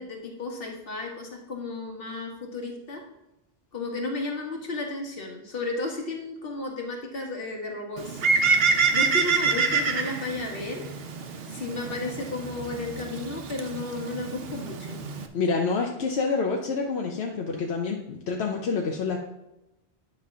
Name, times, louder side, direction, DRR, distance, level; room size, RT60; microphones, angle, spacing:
voice 1, 0.0-3.0 3.7-8.2 8.9-10.8 11.5-15.0, left 3 dB, 60° left, 1 dB, 1.7 m, -33 dB
Bird, 8.0-15.3, right 4 dB, 70° right, 1.0 m, -27 dB
voice 2, 15.3-19.2, left 4 dB, 80° left, 1 dB, 1.1 m, -27 dB
9.8 x 3.7 x 6.0 m, 0.91 s
omnidirectional pair, 1.1 m